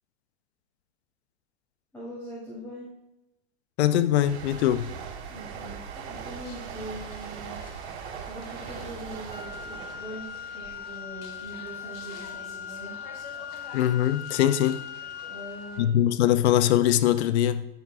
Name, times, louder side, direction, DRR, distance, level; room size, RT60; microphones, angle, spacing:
voice 1, 1.9-2.9 5.3-7.6 8.3-12.9 15.3-15.9, right 1 dB, 10° left, 3.4 m, -42 dB
voice 2, 3.8-4.9 13.7-14.8 15.8-17.6, left 11 dB, 80° left, 0.6 m, -22 dB
sound 1, 4.2-11.7 12.0-12.3, right 7 dB, 85° right, 2.2 m, -40 dB
sound 2, 6.3-15.8, left 4 dB, 60° left, 2.4 m, -50 dB
Wind instrument woodwind instrument, 9.3-15.9, left 7 dB, 25° left, 1.8 m, -40 dB
12.0 x 9.0 x 2.6 m
supercardioid pair, 145°, 33 cm